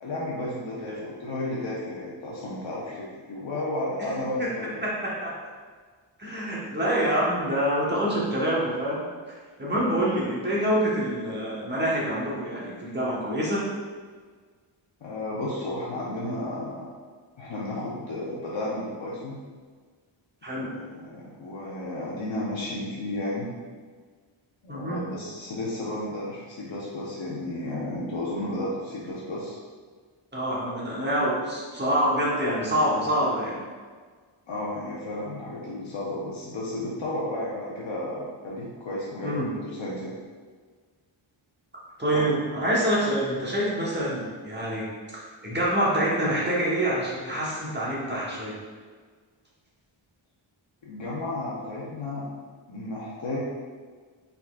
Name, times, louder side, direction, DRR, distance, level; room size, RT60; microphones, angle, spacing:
voice 1, 0.0-4.8 9.7-9.9 15.0-16.9 17.4-19.4 20.5-23.5 24.6-29.6 34.5-40.1 42.1-42.2 50.8-52.3 52.7-53.4, left 1 dB, 75° left, -6 dB, 0.9 m, -33 dB
voice 2, 4.8-5.4 6.2-13.7 20.4-20.7 24.7-25.0 30.3-33.6 39.2-39.5 42.0-48.6, right 1 dB, 20° right, -6 dB, 1.1 m, -26 dB
4.6 x 4.0 x 2.3 m, 1.5 s
wide cardioid pair, 135°, 47 cm